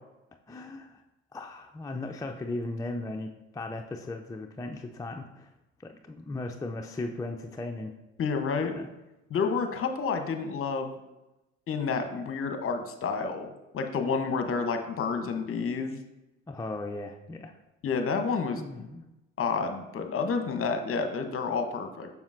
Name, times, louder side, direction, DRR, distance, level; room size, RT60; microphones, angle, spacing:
voice 1, 0.5-1.0 1.3-5.5 5.8-7.9 8.6-8.9 16.5-17.5 18.2-19.0, left 2 dB, 10° left, 3 dB, 0.4 m, -37 dB
voice 2, 8.2-8.7 9.3-10.9 11.7-16.0 17.8-18.9 19.4-22.1, left 5 dB, 40° left, 7 dB, 0.9 m, -30 dB
7.0 x 6.0 x 2.5 m, 0.98 s
hypercardioid pair, 65°, 36 cm